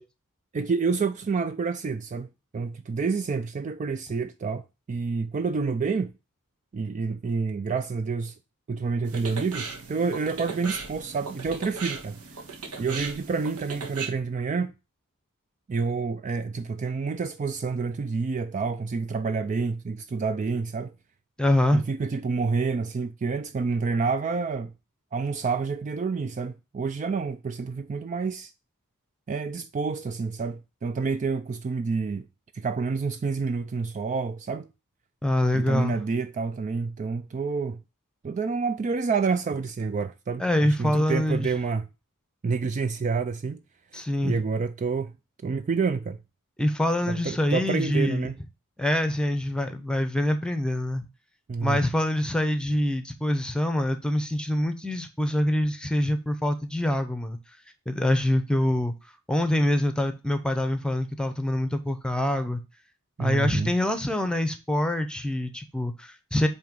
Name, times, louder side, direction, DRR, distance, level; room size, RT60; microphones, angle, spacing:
voice 1, 0.5-2.3 2.5-6.1 6.7-8.3 8.7-12.2 12.8-14.7 15.7-20.9 21.7-24.7 25.1-28.5 29.3-32.3 32.5-34.7 35.5-37.8 38.2-41.9 42.4-43.6 43.9-45.1 45.4-46.2 47.1-48.4 51.5-51.8 63.2-63.7, right 4 dB, 35° right, 0.3 m, -28 dB
sound 1, 9.0-14.1, right 4 dB, 75° right, 1.4 m, -37 dB
voice 2, 21.4-21.8 35.2-35.9 40.4-41.5 43.9-44.3 46.6-48.3 48.8-51.1 51.6-57.4 57.9-58.9 59.3-62.6 63.2-66.5, left 1 dB, 5° left, 0.8 m, -25 dB
7.9 x 2.9 x 5.2 m
head